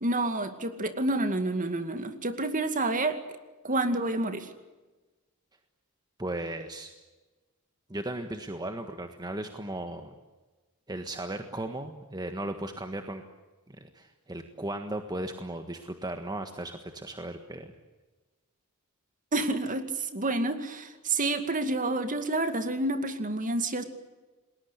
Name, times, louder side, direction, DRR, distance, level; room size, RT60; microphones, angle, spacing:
voice 1, 0.0-3.2 3.6-4.5 19.3-23.8, right 2 dB, 35° right, 9 dB, 2.3 m, -29 dB
voice 2, 6.2-6.9 7.9-10.1 10.9-13.2 13.7-17.7, right 1 dB, 20° right, 6 dB, 1.5 m, -36 dB
29.0 x 20.5 x 8.2 m, 1.2 s
head